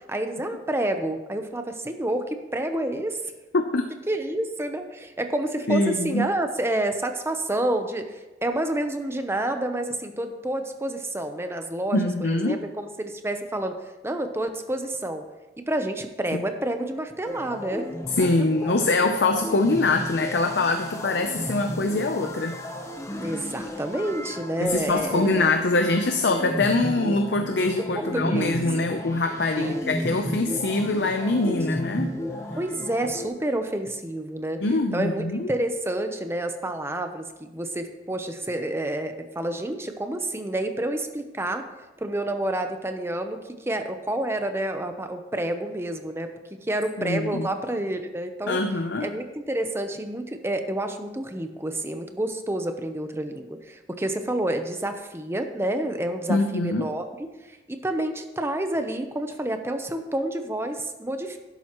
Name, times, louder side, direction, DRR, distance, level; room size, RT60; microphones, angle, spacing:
voice 1, 0.1-2.2 2.5-3.2 4.1-8.0 8.4-13.7 14.0-15.2 15.6-17.9 23.1-25.5 27.9-28.6 29.6-29.9 32.6-34.6 34.9-41.6 42.0-43.4 43.7-46.3 46.7-48.6 49.0-57.3 57.7-61.4, right 1 dB, 15° right, 6 dB, 0.8 m, -29 dB
voice 2, 3.5-3.9 5.7-6.2 11.9-12.6 16.3-16.4 18.2-22.6 24.6-32.2 34.6-35.5 47.0-47.5 48.5-49.1 56.3-56.9, left 2 dB, 70° left, 6 dB, 0.7 m, -24 dB
sound 1, 17.3-33.3, left 1 dB, 15° left, 0.9 m, -34 dB
11.5 x 11.0 x 3.1 m, 1.1 s
head